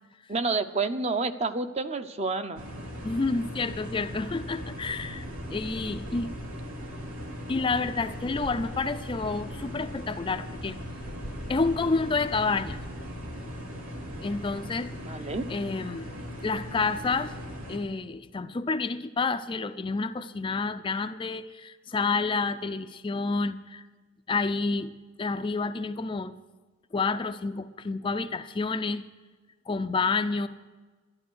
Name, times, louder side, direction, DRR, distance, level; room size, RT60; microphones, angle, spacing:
voice 1, 0.3-2.7 15.0-15.5, right 3 dB, 30° right, 10 dB, 0.6 m, -29 dB
sound 1, 2.6-17.8, equal, 90° right, 2.6 m, -39 dB
voice 2, 3.0-6.3 7.5-10.8 11.5-12.8 14.2-15.2 15.5-16.1 16.4-17.4 17.7-23.8 24.3-26.3 26.9-29.0 29.7-30.5, left 4 dB, 25° left, 9 dB, 0.4 m, -29 dB
12.0 x 12.0 x 6.3 m, 1.3 s
head